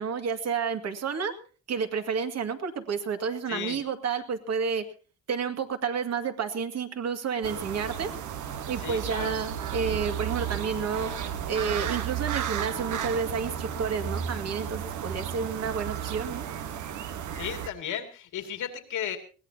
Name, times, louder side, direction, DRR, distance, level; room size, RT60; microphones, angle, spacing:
voice 1, 0.0-1.3 1.7-4.8 5.3-8.1 8.7-11.1 11.5-16.5, right 6 dB, 60° right, 7 dB, 2.3 m, -30 dB
voice 2, 3.5-3.8 8.8-9.4 17.3-19.2, left 9 dB, 80° left, 4 dB, 2.7 m, -34 dB
sound 1, 7.4-17.7, right 9 dB, 75° right, 1.4 m, -33 dB
21.5 x 17.5 x 2.9 m, 0.38 s
cardioid pair, 90°, 30 cm